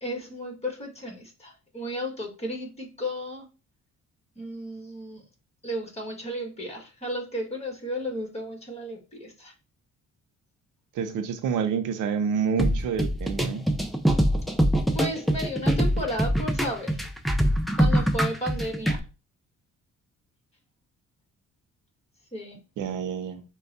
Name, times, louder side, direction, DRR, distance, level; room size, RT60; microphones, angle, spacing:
voice 1, 0.0-3.5 4.3-5.2 5.6-9.5 14.9-17.0 17.8-19.0 22.3-22.6, equal, 20° left, 1.5 m, -34 dB
voice 2, 11.0-13.6 22.8-23.4, right 7 dB, 85° right, 0.7 m, -28 dB
sound 1, 12.6-19.0, equal, ahead, 0.5 m, -24 dB
4.2 x 2.3 x 4.0 m
cardioid pair, 90°, 30 cm